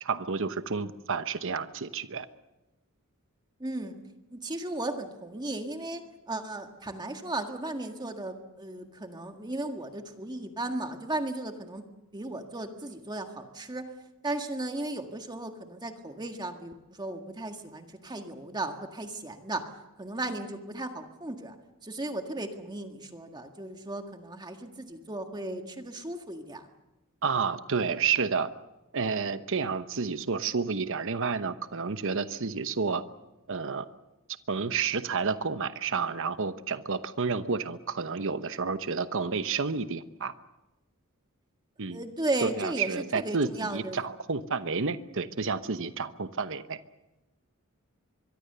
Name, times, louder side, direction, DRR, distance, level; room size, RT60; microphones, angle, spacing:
voice 1, 0.0-2.3 27.2-28.5 28.9-33.0 33.5-33.9 34.5-40.3 41.8-42.0 42.4-46.8, right 5 dB, 60° right, 12 dB, 1.0 m, -30 dB
voice 2, 3.6-4.0 4.3-6.0 6.3-11.8 12.1-13.9 14.2-19.7 20.0-21.6 21.8-26.7 41.9-44.0, right 2 dB, 20° right, 5 dB, 1.8 m, -35 dB
24.5 x 23.0 x 6.8 m, 1.0 s
head